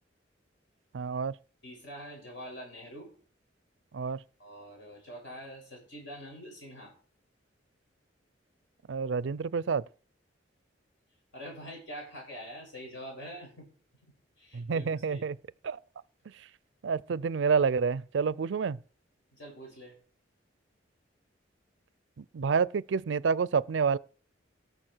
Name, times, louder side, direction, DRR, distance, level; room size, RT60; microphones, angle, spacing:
voice 1, 0.9-1.4 3.9-4.2 8.9-9.8 14.5-15.4 15.6-15.8 16.8-18.8 22.2-24.0, right 5 dB, 70° right, 0.4 m, -28 dB
voice 2, 1.6-3.1 4.4-6.9 11.3-13.7 14.0-15.3 19.3-20.0, equal, 75° left, 6.0 m, -45 dB
18.0 x 6.8 x 4.5 m
head